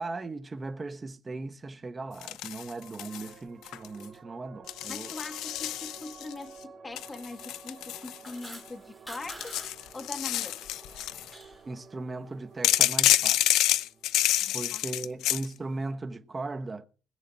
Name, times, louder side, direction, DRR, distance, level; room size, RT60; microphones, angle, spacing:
voice 1, 0.0-5.1 11.6-13.6 14.5-16.8, right 3 dB, 20° right, 1.1 m, -38 dB
sound 1, 2.2-3.3 3.6-4.0 4.7-6.3 7.0-8.7 9.2-11.3 12.6-15.5, left 14 dB, 75° left, 0.5 m, -28 dB
sound 2, 2.7-15.6, right 6 dB, 40° right, 1.6 m, -53 dB
voice 2, 4.9-9.6 9.9-10.6 14.4-14.8, left 3 dB, 20° left, 1.8 m, -42 dB
sound 3, 8.0-10.3 10.7-11.6, right 1 dB, 5° left, 5.6 m, -46 dB
20.5 x 7.5 x 4.2 m
cardioid pair, 125°, 0 cm